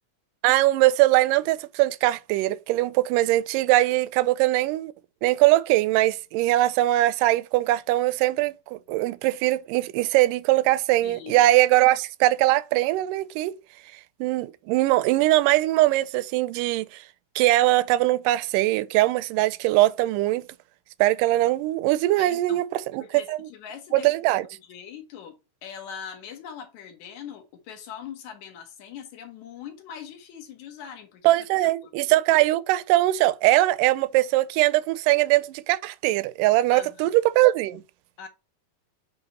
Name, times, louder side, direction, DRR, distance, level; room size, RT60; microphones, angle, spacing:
voice 1, 0.4-4.9 5.2-13.5 14.2-17.0 17.4-20.5 21.0-23.5 23.9-24.5 31.2-37.8, right 16 dB, 80° right, 2.1 m, -21 dB
voice 2, 11.0-11.5 22.2-22.7 23.0-31.3 36.7-37.1 38.2-38.3, left 8 dB, 65° left, 2.4 m, -42 dB
8.5 x 3.0 x 4.1 m
omnidirectional pair, 3.8 m